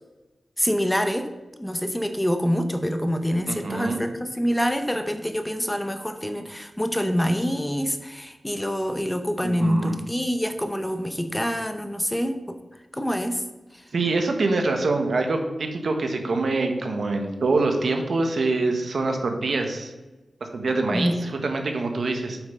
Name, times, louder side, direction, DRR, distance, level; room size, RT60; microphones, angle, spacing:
voice 1, 0.6-1.3 1.6-12.6 12.9-13.4 13.7-13.8 20.9-21.3, equal, 10° left, 7 dB, 0.8 m, -26 dB
voice 2, 3.5-4.0 9.4-10.0 13.9-19.9 20.5-22.4, right 3 dB, 70° right, 4 dB, 1.3 m, -25 dB
7.7 x 5.7 x 5.4 m, 1.1 s
wide cardioid pair, 70°, 0 cm